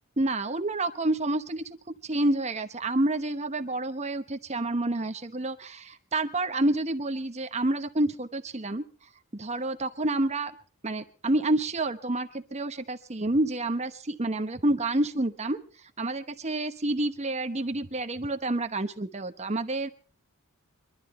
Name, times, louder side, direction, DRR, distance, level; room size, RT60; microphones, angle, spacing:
voice 1, 0.2-1.8 2.0-8.8 9.3-10.5 10.8-15.6 16.0-19.9, right 2 dB, 30° right, 8 dB, 1.0 m, -28 dB
23.5 x 12.5 x 4.3 m, 0.39 s
head